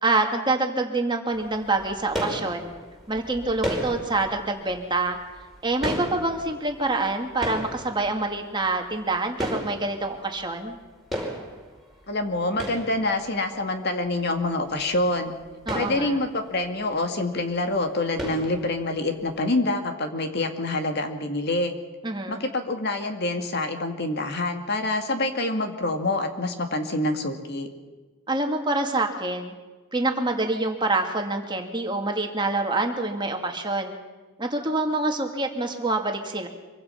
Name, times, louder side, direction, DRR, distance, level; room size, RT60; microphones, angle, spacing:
voice 1, 0.0-2.7 3.1-5.2 5.6-10.8 15.7-16.2 22.0-22.4 28.3-29.5 29.9-34.0 34.4-36.5, right 2 dB, 20° right, 3 dB, 2.2 m, -26 dB
sound 1, 1.3-10.8 11.1-13.6 14.1-14.2 14.5-14.6 14.8-15.0 15.4-17.2 17.5-17.8 18.2-19.2, equal, ahead, 5.2 m, -35 dB
voice 2, 12.1-15.3 15.7-21.7 22.3-27.7, left 2 dB, 50° left, 5 dB, 2.3 m, -26 dB
25.5 x 24.0 x 5.9 m, 1.3 s
head